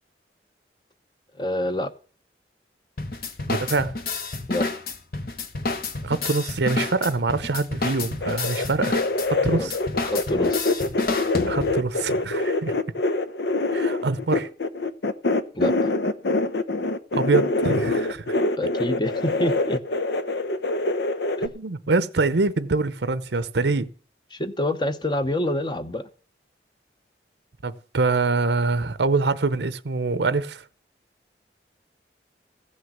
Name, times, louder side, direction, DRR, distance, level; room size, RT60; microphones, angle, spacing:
voice 1, 1.4-1.9 4.5-4.7 9.6-9.7 10.0-10.8 15.5-15.9 18.6-19.8 24.3-26.1, left 1 dB, 25° left, 0.9 m, -27 dB
sound 1, 3.0-11.9, left 3 dB, 55° left, 1.2 m, -30 dB
voice 2, 3.5-3.9 6.0-9.0 9.3-9.7 11.5-12.8 13.7-14.5 17.1-18.4 21.4-23.9 27.6-30.6, right 3 dB, 80° right, 0.7 m, -24 dB
sound 2, 8.2-21.5, left 2 dB, 75° left, 0.8 m, -25 dB
15.5 x 6.5 x 7.2 m
head